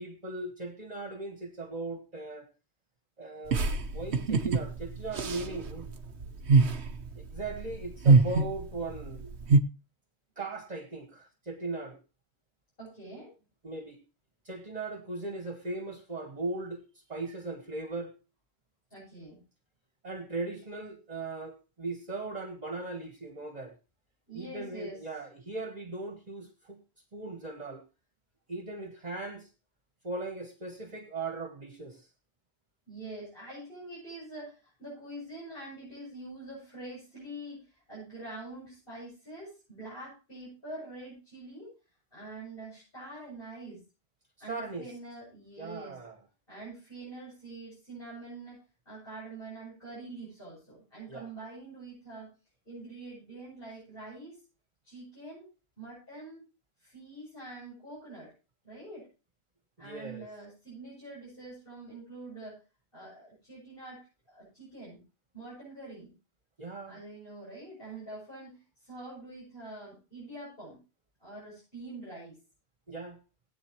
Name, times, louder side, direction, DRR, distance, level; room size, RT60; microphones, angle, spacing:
voice 1, 0.0-2.5 3.2-5.9 7.2-9.4 10.4-12.0 13.6-14.0 14.5-18.1 20.0-23.7 24.3-26.8 27.1-27.8 28.5-29.5 30.0-32.1 44.5-44.9 45.6-46.2 51.1-51.3 59.8-60.3 66.6-67.0 72.9-73.2, right 3 dB, 35° right, 5 dB, 1.7 m, -38 dB
sound 1, 3.5-9.6, right 4 dB, 75° right, 1.3 m, -25 dB
voice 2, 12.8-13.3 18.9-19.4 24.3-25.0 32.9-41.7 42.1-43.8 44.4-46.0 46.5-52.3 52.6-54.4 54.8-55.5 55.8-56.4 56.8-58.3 58.6-59.1 59.8-62.6 62.9-65.0 65.3-66.1 66.9-70.8 71.2-72.4, right 2 dB, 55° left, -8 dB, 8.3 m, -45 dB
20.0 x 8.6 x 3.1 m, 0.31 s
omnidirectional pair, 1.1 m